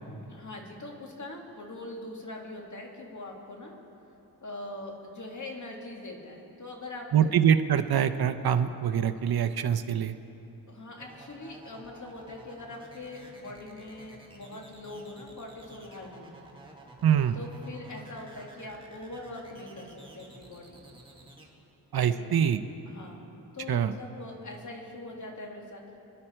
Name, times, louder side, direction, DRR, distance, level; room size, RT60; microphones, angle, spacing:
voice 1, 0.3-3.7 4.4-7.3 10.7-16.3 17.3-21.0 22.1-22.3 22.9-26.0, left 2 dB, 50° left, 0 dB, 2.3 m, -42 dB
voice 2, 7.1-10.1 17.0-17.4 21.9-22.6 23.7-23.9, right 8 dB, 70° right, 9 dB, 0.7 m, -24 dB
sound 1, 11.0-21.4, right 2 dB, 15° right, 1.9 m, -52 dB
26.0 x 11.0 x 4.4 m, 2.9 s
wide cardioid pair, 110°, 39 cm